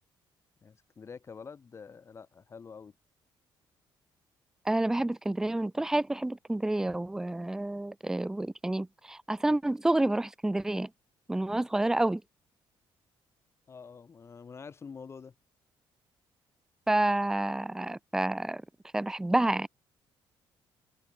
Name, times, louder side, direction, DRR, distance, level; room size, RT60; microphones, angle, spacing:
voice 1, 0.6-2.9 13.7-15.3, left 5 dB, 30° left, 6.6 m, -47 dB
voice 2, 4.7-10.9 11.3-12.2 16.9-18.6 18.9-19.7, right 1 dB, 5° right, 0.5 m, -29 dB
cardioid pair, 145°, 9 cm